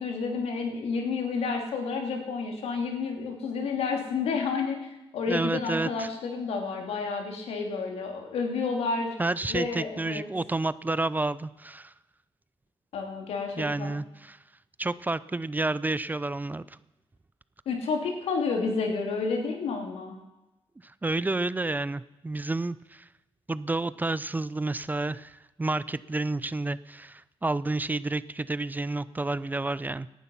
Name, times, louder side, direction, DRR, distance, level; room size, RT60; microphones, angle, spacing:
voice 1, 0.0-4.8 5.1-9.1 9.5-10.3 12.9-13.9 17.6-20.2, left 4 dB, 90° left, 3 dB, 3.3 m, -30 dB
voice 2, 5.3-6.1 9.2-11.9 13.6-14.4 14.8-16.8 20.8-23.0 23.5-30.1, right 2 dB, 15° right, 17 dB, 0.5 m, -30 dB
18.0 x 11.5 x 5.7 m, 0.99 s
cardioid pair, 100°, 10 cm